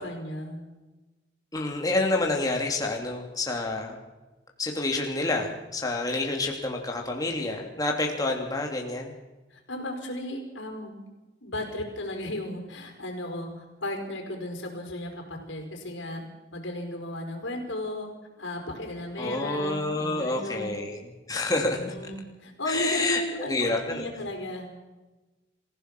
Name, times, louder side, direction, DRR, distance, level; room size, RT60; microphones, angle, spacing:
voice 1, 0.0-0.6 9.5-10.9 11.4-16.2 16.5-18.1 18.4-20.7 21.7-24.7, left 1 dB, 75° left, 3 dB, 5.1 m, -35 dB
voice 2, 1.5-4.0 4.6-9.1 19.2-21.0 21.3-21.8 22.7-24.1, left 2 dB, 20° left, 1 dB, 2.9 m, -28 dB
26.5 x 16.0 x 6.1 m, 1.1 s
head